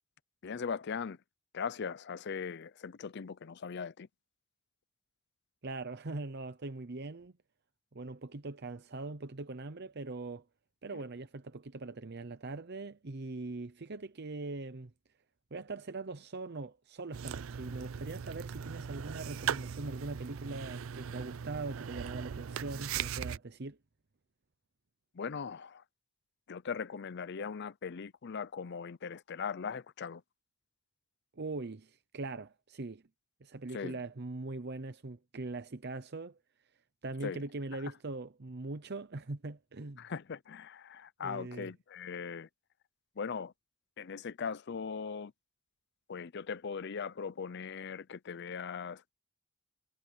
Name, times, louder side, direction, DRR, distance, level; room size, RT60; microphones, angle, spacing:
voice 1, 0.4-1.2 1.5-4.1 10.9-11.0 25.1-25.8 26.5-30.2 33.7-34.0 37.2-37.4 40.0-42.5 43.2-43.5 44.0-45.3 46.1-49.1, left 6 dB, 55° left, 0.5 m, -39 dB
voice 2, 5.6-7.3 7.9-10.4 10.8-14.9 15.5-23.8 31.3-33.0 33.4-36.4 37.0-40.0 41.2-41.7, right 3 dB, 55° right, 0.8 m, -41 dB
sound 1, 17.1-23.4, right 7 dB, 80° right, 0.5 m, -39 dB
head